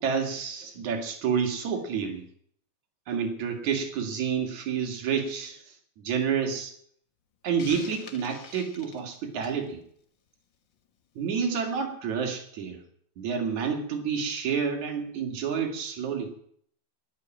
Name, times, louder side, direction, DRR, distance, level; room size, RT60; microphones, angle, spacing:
voice 1, 0.0-2.2 3.1-6.7 7.4-9.8 11.2-12.8 13.2-16.3, right 6 dB, 70° right, 4 dB, 3.4 m, -29 dB
Hiss, 7.6-9.6, left 6 dB, 50° left, 1.6 m, -45 dB
19.5 x 8.5 x 7.4 m, 0.65 s
omnidirectional pair, 3.5 m